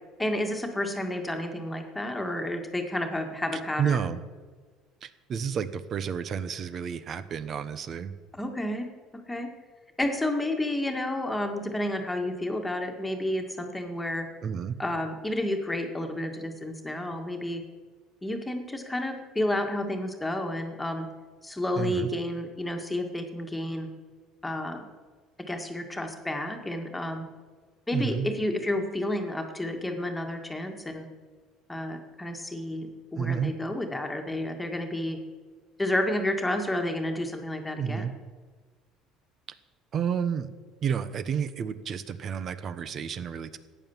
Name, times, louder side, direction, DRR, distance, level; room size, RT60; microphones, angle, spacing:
voice 1, 0.2-4.1 8.3-8.9 9.3-9.5 10.0-14.3 14.8-17.6 18.2-21.1 21.4-23.9 24.4-24.9 25.5-27.3 27.9-31.1 31.7-35.2 35.8-38.1, left 1 dB, 10° left, 4 dB, 1.9 m, -31 dB
voice 2, 3.5-4.2 5.0-8.1 14.4-14.8 21.8-22.1 27.9-28.3 33.2-33.5 37.8-38.1 39.9-40.5 40.8-43.6, right 7 dB, 45° right, 13 dB, 1.0 m, -30 dB
14.0 x 9.4 x 7.2 m, 1.5 s
cardioid pair, 115°, 0 cm